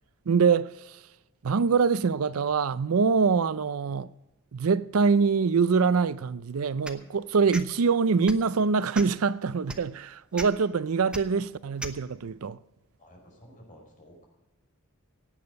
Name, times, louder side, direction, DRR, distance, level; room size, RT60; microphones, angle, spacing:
voice 1, 0.3-1.0 1.4-4.1 4.5-12.6, right 5 dB, 90° right, 0.5 m, -24 dB
sound 1, 6.8-7.0 7.5-7.7 8.2-8.5 8.9-9.2 9.7-9.8 10.3-10.5 11.1-11.2 11.8-12.0, right 1 dB, 5° right, 1.0 m, -36 dB
voice 2, 13.0-14.3, equal, 40° left, 5.2 m, -52 dB
17.5 x 8.9 x 5.2 m
head